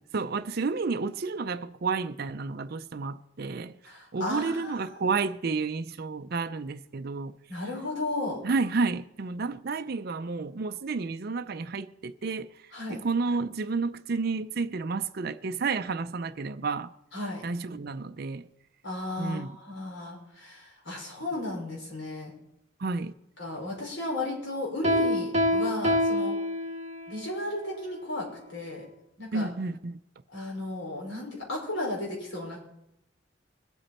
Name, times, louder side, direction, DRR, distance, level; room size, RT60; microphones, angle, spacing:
voice 1, 0.1-3.8 4.1-7.3 8.4-12.5 12.9-16.9 17.4-18.5 19.2-19.5 22.8-23.1 29.3-30.0, right 4 dB, 55° right, 0.5 m, -31 dB
voice 2, 3.8-4.8 7.5-8.4 12.7-13.0 17.1-17.4 18.8-22.3 23.4-26.3 27.1-28.8 29.2-29.5 30.3-32.6, left 2 dB, 75° left, 5.5 m, -34 dB
Piano, 24.8-27.1, left 1 dB, 35° right, 1.5 m, -26 dB
21.5 x 8.3 x 4.3 m
head